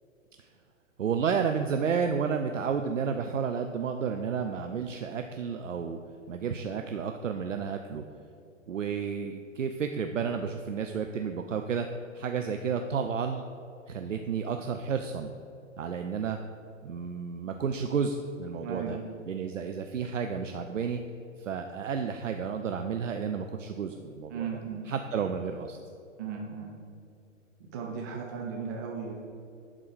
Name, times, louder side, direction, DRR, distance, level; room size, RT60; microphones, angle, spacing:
voice 1, 1.0-6.0 6.3-8.0 8.7-11.9 12.1-13.4 13.9-15.3 15.8-16.4 16.8-19.0 19.3-21.0 21.4-24.5 24.9-25.8, right 6 dB, 75° right, 5 dB, 0.6 m, -31 dB
voice 2, 18.6-19.0 24.3-24.9 26.2-26.8 27.6-29.1, right 6 dB, 15° right, -1 dB, 0.4 m, -36 dB
11.5 x 3.9 x 4.8 m, 2.6 s
figure-of-eight pair, 110°, 39 cm